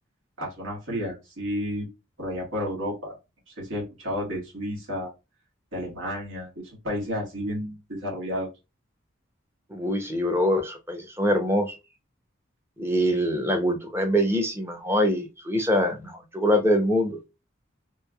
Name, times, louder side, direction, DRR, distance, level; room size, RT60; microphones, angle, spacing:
voice 1, 0.4-1.9 2.2-3.2 3.5-5.1 5.7-8.5, equal, 80° right, -2 dB, 1.6 m, -31 dB
voice 2, 9.7-11.8 12.8-17.2, equal, 10° right, 4 dB, 0.6 m, -24 dB
3.2 x 3.0 x 2.3 m, 0.25 s
head